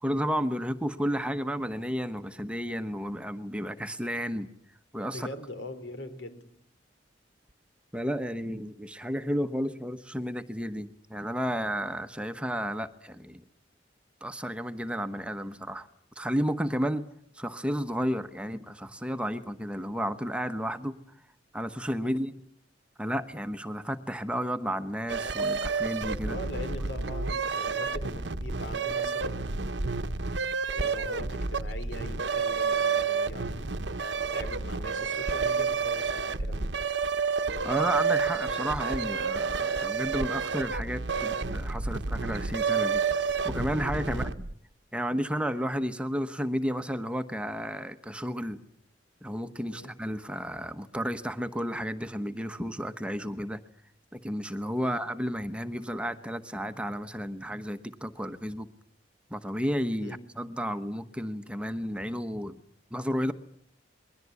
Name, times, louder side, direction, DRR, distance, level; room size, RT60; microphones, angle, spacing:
voice 1, 0.0-4.5 4.9-5.3 7.9-13.4 14.2-15.9 16.2-17.0 17.3-21.0 21.5-22.3 23.0-26.4 37.6-43.0 43.4-44.3 44.9-48.6 49.2-53.6 54.1-58.7 59.3-62.5 62.9-63.3, equal, 5° right, 9 dB, 1.1 m, -32 dB
voice 2, 5.1-6.4 22.0-22.2 26.2-29.9 30.7-36.7 41.1-41.3 44.0-44.3 49.7-49.9 54.8-55.0 60.0-60.2, left 1 dB, 80° left, 10 dB, 4.1 m, -42 dB
sound 1, 25.1-44.5, right 5 dB, 75° right, 1.1 m, -30 dB
29.0 x 21.5 x 8.3 m, 0.65 s
head